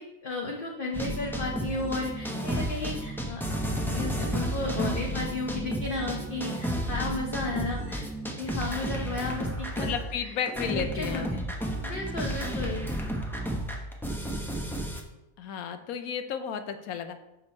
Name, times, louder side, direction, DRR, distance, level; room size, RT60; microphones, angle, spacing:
voice 1, 0.0-3.4 3.7-8.0 8.4-9.9 10.2-10.3 10.6-11.4 11.8-12.8, left 2 dB, 45° left, 0 dB, 1.0 m, -34 dB
sound 1, 0.9-10.2 10.5-15.0, right 1 dB, ahead, 0.6 m, -32 dB
voice 2, 9.8-11.3 15.4-17.2, left 8 dB, 85° left, 8 dB, 1.2 m, -33 dB
6.2 x 6.2 x 4.2 m, 0.94 s
omnidirectional pair, 1.5 m